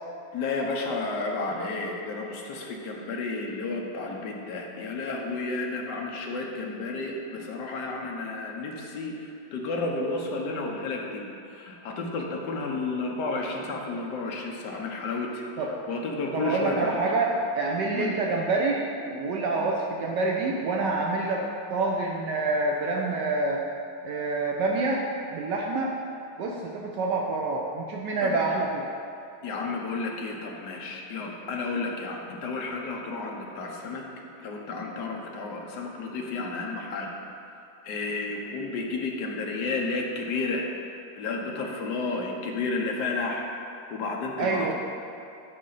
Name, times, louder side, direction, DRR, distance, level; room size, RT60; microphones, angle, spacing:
voice 1, 0.3-15.4 15.9-17.1 17.9-18.1 28.2-28.4 29.4-34.0 34.4-37.1 37.8-40.7 41.2-43.5 43.9-44.7, left 3 dB, 65° left, 0 dB, 1.4 m, -32 dB
voice 2, 16.3-18.8 19.1-23.6 24.0-25.1 25.3-25.9 26.4-28.8 44.4-44.7, right 3 dB, 70° right, -1 dB, 1.2 m, -27 dB
12.5 x 4.2 x 3.9 m, 2.7 s
omnidirectional pair, 2.1 m